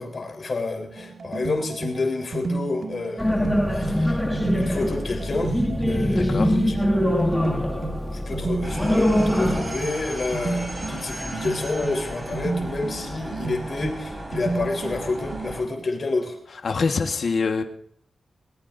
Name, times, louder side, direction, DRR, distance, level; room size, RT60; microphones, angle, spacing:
voice 1, 0.0-4.2 4.5-6.7 8.1-16.4, left 3 dB, 50° left, 2 dB, 3.9 m, -29 dB
sound 1, 1.0-15.8, right 3 dB, 60° right, 2.1 m, -33 dB
sound 2, 3.2-9.6, left 1 dB, 5° left, 2.3 m, -23 dB
voice 2, 6.1-6.6 16.6-17.6, left 4 dB, 65° left, 4 dB, 1.5 m, -24 dB
sound 3, 8.6-15.6, right 1 dB, 20° right, 4.9 m, -35 dB
20.5 x 19.5 x 2.7 m, 0.62 s
wide cardioid pair, 120°, 0 cm